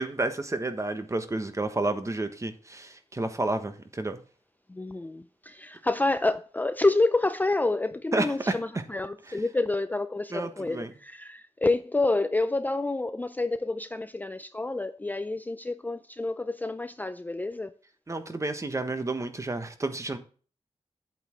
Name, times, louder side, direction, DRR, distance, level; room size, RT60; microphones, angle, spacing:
voice 1, 0.0-4.2 8.1-8.5 10.3-10.9 18.1-20.2, right 2 dB, 25° right, 1.3 m, -30 dB
voice 2, 4.7-17.7, left 2 dB, 15° left, 0.4 m, -28 dB
8.6 x 8.3 x 3.6 m
wide cardioid pair, 135°, 12 cm